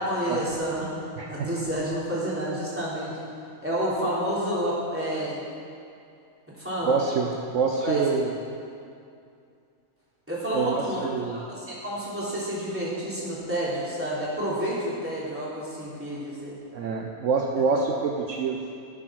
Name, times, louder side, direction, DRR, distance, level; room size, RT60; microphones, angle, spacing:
voice 1, 0.0-1.0 1.3-3.1 3.6-5.4 6.6-7.0 7.6-8.0 10.3-16.6, right 1 dB, 10° right, -8 dB, 3.4 m, -29 dB
voice 2, 6.8-8.3 10.5-11.4 16.7-18.6, right 5 dB, 65° right, 1 dB, 1.1 m, -26 dB
14.0 x 8.0 x 6.3 m, 2.4 s
omnidirectional pair, 1.5 m